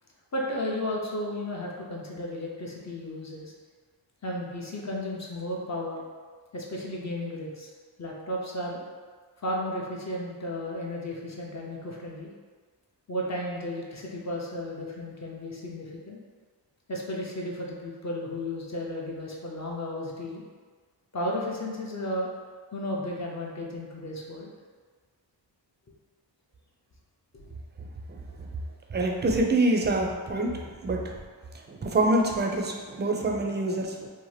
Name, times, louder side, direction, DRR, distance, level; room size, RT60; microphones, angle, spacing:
voice 1, 0.3-3.5 4.2-6.0 6.5-7.7 8.0-8.8 9.4-12.3 13.1-16.2 16.9-20.4 21.1-22.3 22.7-24.5 27.3-27.5, left 1 dB, 40° left, -2 dB, 0.5 m, -34 dB
voice 2, 28.9-30.6 30.8-31.0 31.7-34.1, right 2 dB, 25° right, 1 dB, 0.4 m, -25 dB
2.8 x 2.1 x 3.1 m, 1.5 s
cardioid pair, 60°, 44 cm